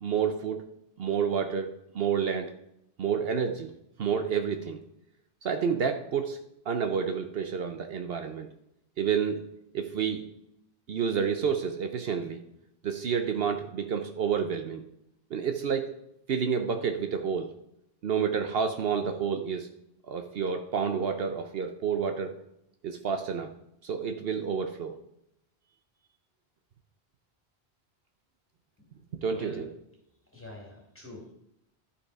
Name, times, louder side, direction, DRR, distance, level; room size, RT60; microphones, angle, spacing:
voice 1, 0.0-0.6 1.0-2.5 3.0-3.7 4.0-4.8 5.4-6.4 6.7-8.5 9.0-9.4 9.7-10.2 10.9-12.4 12.8-14.8 15.3-15.9 16.3-17.5 18.0-19.7 20.1-22.3 22.8-23.5 23.8-24.9 29.2-29.7, right 6 dB, 65° right, 7 dB, 0.9 m, -29 dB
voice 2, 29.2-29.6 30.3-31.3, left 2 dB, 10° left, -1 dB, 2.4 m, -44 dB
11.0 x 5.8 x 4.7 m, 0.80 s
omnidirectional pair, 1.1 m